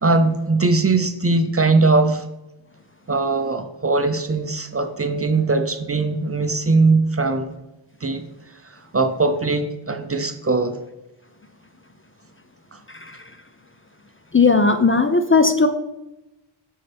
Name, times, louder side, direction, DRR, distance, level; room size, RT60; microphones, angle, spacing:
voice 1, 0.0-2.2 3.1-7.5 8.0-8.3 8.9-10.8 12.7-12.8, right 3 dB, 30° right, 8 dB, 0.6 m, -20 dB
voice 2, 12.9-13.2 14.3-15.7, left 4 dB, 25° left, 8 dB, 0.5 m, -17 dB
8.1 x 5.6 x 3.4 m, 0.96 s
cardioid pair, 50°, 50 cm